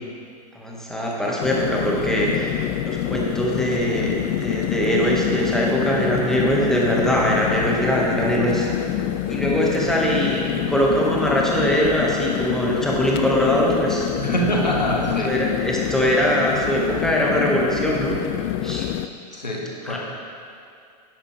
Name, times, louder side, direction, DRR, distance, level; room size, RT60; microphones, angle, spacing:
voice 1, 0.5-8.7 9.3-14.1 15.2-18.2 18.6-18.9 19.9-20.0, equal, ahead, -4 dB, 1.9 m, -22 dB
sound 1, 1.4-19.1, left 12 dB, 35° left, 0.4 m, -26 dB
voice 2, 14.2-15.4 19.3-20.0, equal, 85° left, -1 dB, 1.6 m, -25 dB
11.0 x 10.0 x 3.5 m, 2.4 s
figure-of-eight pair, 90°, 21 cm